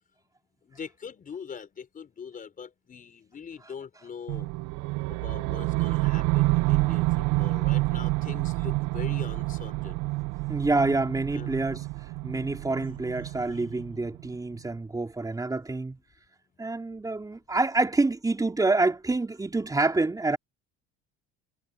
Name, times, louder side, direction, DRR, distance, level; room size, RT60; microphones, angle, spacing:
voice 1, 0.6-4.5 5.1-10.0 11.3-11.6 13.2-13.6, left 6 dB, 30° left, 4.0 m, -42 dB
sound 1, 4.3-14.4, right 22 dB, 85° right, 0.8 m, -28 dB
voice 2, 10.5-11.8 12.2-16.0 16.6-20.4, right 3 dB, 10° right, 4.2 m, -27 dB
cardioid pair, 135°, 29 cm